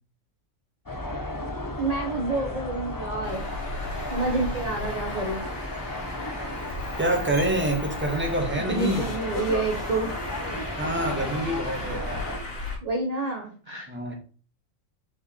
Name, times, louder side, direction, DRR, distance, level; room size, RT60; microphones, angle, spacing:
sound 1, 0.9-12.4, left 1 dB, 20° left, 0.6 m, -34 dB
voice 1, 1.8-3.4 4.1-5.4 8.7-10.1 12.8-13.9, right 2 dB, 30° right, 1.0 m, -28 dB
Traffic noise roadway noise, 3.2-12.7, left 1 dB, 45° left, 2.4 m, -37 dB
voice 2, 7.0-9.1 10.5-12.3 13.9-14.2, right 1 dB, 10° right, 1.4 m, -27 dB
sound 2, 7.3-7.6 8.7-10.4 11.6-11.7 12.0-12.1, left 4 dB, 75° left, 1.7 m, -44 dB
5.2 x 4.9 x 4.3 m
omnidirectional pair, 1.4 m